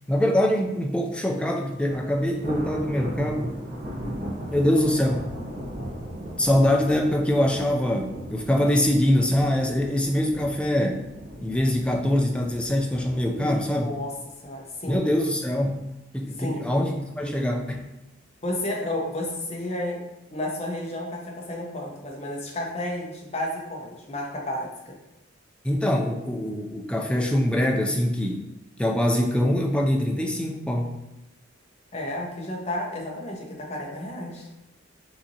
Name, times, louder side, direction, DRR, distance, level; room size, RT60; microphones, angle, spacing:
voice 1, 0.1-3.5 4.5-5.3 6.4-11.0 11.4-13.9 14.9-15.8 16.1-17.9 25.6-28.4 28.8-31.0, left 1 dB, 5° left, 1 dB, 0.3 m, -23 dB
Thunder, 1.8-15.1 15.5-15.8 16.2-16.3 17.2-17.7, equal, 40° right, 0.8 m, -37 dB
voice 2, 13.4-14.1 14.4-15.0 16.4-16.6 18.4-20.0 20.3-25.0 31.9-34.5, left 1 dB, 30° left, -1 dB, 0.7 m, -32 dB
5.7 x 2.8 x 2.7 m, 0.93 s
head